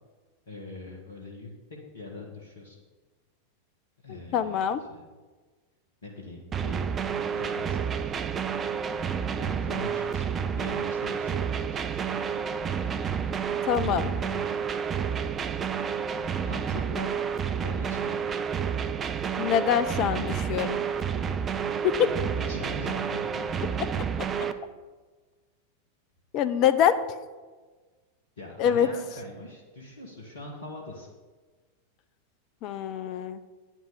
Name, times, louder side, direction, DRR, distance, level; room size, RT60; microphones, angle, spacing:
voice 1, 0.5-1.5 1.9-2.8 4.0-5.0 6.0-6.8 7.2-8.4 9.4-10.2 10.6-12.2 14.0-14.5 16.4-17.2 17.5-18.4 22.0-23.5 28.4-31.1, left 2 dB, 65° left, 0 dB, 1.6 m, -42 dB
voice 2, 4.1-4.8 13.7-14.1 19.4-20.8 22.0-22.1 26.3-27.0 28.6-28.9 32.6-33.4, left 9 dB, 40° left, 12 dB, 0.6 m, -24 dB
sound 1, 6.5-24.5, right 7 dB, 25° right, 0.6 m, -30 dB
9.3 x 6.1 x 6.8 m, 1.3 s
figure-of-eight pair, 90°, 0 cm